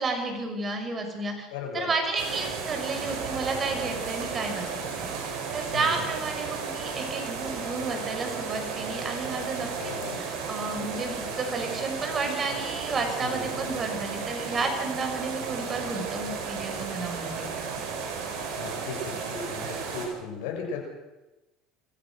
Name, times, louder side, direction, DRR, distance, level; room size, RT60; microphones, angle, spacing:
voice 1, 0.0-1.5 1.7-9.7 10.0-17.5, right 3 dB, 35° right, 5 dB, 6.1 m, -32 dB
voice 2, 1.5-1.9 5.7-6.0 9.7-10.2 13.2-13.6 18.6-20.8, left 4 dB, 75° left, 1 dB, 6.7 m, -36 dB
sound 1, 2.2-20.1, right 5 dB, 70° right, 5.7 m, -34 dB
26.0 x 16.0 x 6.4 m, 1.0 s
hypercardioid pair, 80°, 0 cm